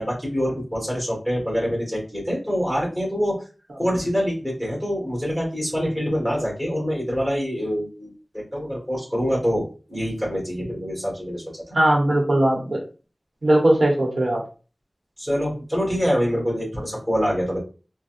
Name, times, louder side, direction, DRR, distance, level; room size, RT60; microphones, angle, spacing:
voice 1, 0.0-3.4 3.8-11.6 15.2-17.6, equal, 10° right, -3 dB, 1.9 m, -25 dB
voice 2, 11.7-12.8 13.4-14.4, right 1 dB, 65° right, -1 dB, 1.2 m, -19 dB
4.1 x 2.3 x 2.6 m, 0.35 s
wide cardioid pair, 70°, 0 cm